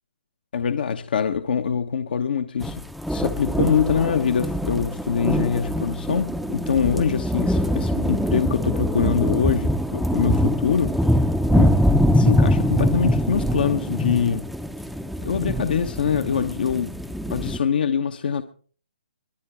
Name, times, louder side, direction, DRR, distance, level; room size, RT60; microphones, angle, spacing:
voice 1, 0.5-2.8 3.1-11.8 12.1-14.5 15.2-16.9 17.3-18.4, left 6 dB, 60° left, 1.0 m, -24 dB
sound 1, 2.6-17.6, equal, ahead, 0.6 m, -23 dB
23.0 x 9.6 x 4.7 m
hypercardioid pair, 145°, 6 cm